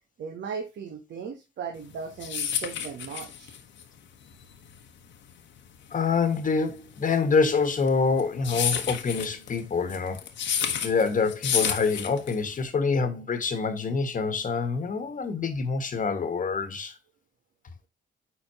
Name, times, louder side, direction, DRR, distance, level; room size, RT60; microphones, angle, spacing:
voice 1, 0.2-3.6, right 6 dB, 60° right, 1.1 m, -37 dB
sound 1, 1.8-12.6, left 8 dB, 70° left, 1.2 m, -31 dB
voice 2, 5.9-10.2 10.5-16.9, left 4 dB, 40° left, 1.4 m, -26 dB
9.5 x 4.0 x 2.9 m
cardioid pair, 90°, 20 cm